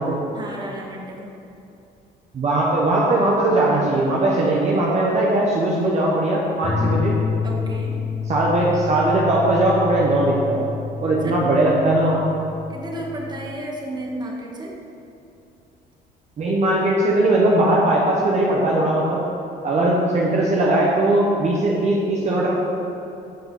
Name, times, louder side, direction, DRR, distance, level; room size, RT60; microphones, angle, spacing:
voice 1, 0.3-1.3 6.8-7.1 7.4-8.0 11.2-11.4 12.7-14.7, right 1 dB, 25° right, -2 dB, 1.6 m, -32 dB
voice 2, 2.3-7.1 8.3-10.6 11.0-12.3 16.4-19.2 19.6-22.5, right 1 dB, 40° right, -4 dB, 1.2 m, -19 dB
sound 1, 6.6-13.5, left 5 dB, 30° left, 0.7 m, -28 dB
14.0 x 4.9 x 4.0 m, 2.7 s
cardioid pair, 110°, 17 cm